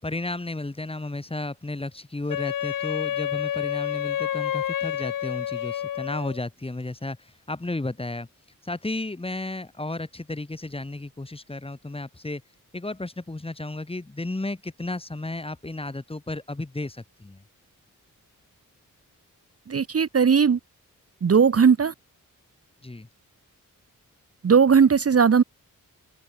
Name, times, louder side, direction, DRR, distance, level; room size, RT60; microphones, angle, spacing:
voice 1, 0.0-8.3 8.6-12.4 12.7-17.4 22.8-23.1, left 2 dB, 15° left, 5.6 m, -33 dB
Wind instrument woodwind instrument, 2.3-6.4, left 11 dB, 75° left, 0.7 m, -29 dB
voice 2, 19.7-20.6 21.2-21.9 24.4-25.4, right 6 dB, 45° right, 1.4 m, -18 dB
open air
wide cardioid pair, 165°, 33 cm